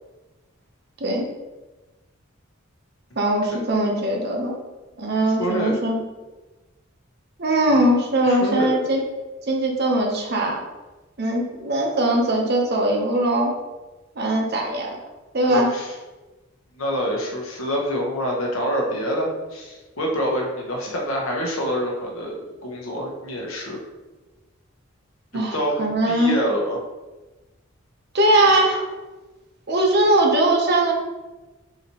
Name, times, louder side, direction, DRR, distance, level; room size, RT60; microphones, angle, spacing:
voice 1, 3.2-4.6 5.0-6.0 7.4-9.0 9.5-10.6 11.2-13.5 14.2-15.0 15.3-15.8 25.3-26.4 28.1-28.9 29.7-30.9, right 1 dB, 50° right, 0 dB, 0.8 m, -20 dB
voice 2, 5.4-5.8 7.7-7.9 8.2-8.8 15.5-15.9 16.7-23.8 25.5-26.8, equal, 80° left, -1 dB, 0.9 m, -26 dB
4.9 x 2.8 x 2.9 m, 1.1 s
head